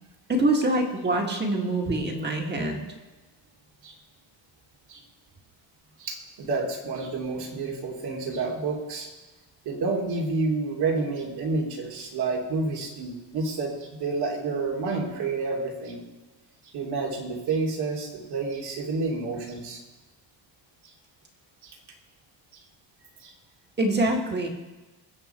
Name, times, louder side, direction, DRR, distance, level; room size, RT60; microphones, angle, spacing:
voice 1, 0.3-2.8 23.8-24.5, right 1 dB, 25° right, 2 dB, 2.0 m, -25 dB
voice 2, 6.0-9.1 9.6-16.0 16.7-19.8 21.6-21.8 23.2-23.3, right 3 dB, 60° right, -1 dB, 3.0 m, -29 dB
21.0 x 7.6 x 4.5 m, 1.2 s
cardioid pair, 160°, 43 cm